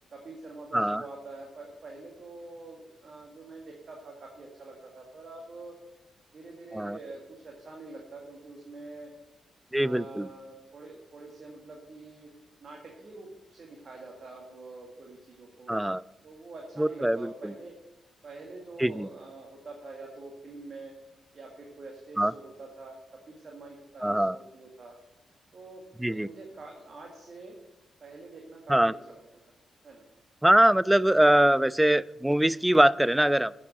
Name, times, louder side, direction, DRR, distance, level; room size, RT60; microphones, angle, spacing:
voice 1, 0.1-5.8 6.3-9.1 9.7-12.3 12.6-15.7 16.2-17.7 18.2-21.0 21.3-25.0 25.5-27.6 28.0-29.2 29.5-29.6 29.8-30.0, right 3 dB, 55° right, 0 dB, 1.9 m, -45 dB
voice 2, 9.7-10.3 15.7-16.0 16.8-17.5 18.8-19.1 22.2-22.3 24.0-24.4 26.0-26.3 28.7-28.9 30.4-33.5, right 1 dB, 10° right, 20 dB, 0.3 m, -23 dB
8.5 x 6.7 x 7.4 m, 0.96 s
hypercardioid pair, 45°, 0 cm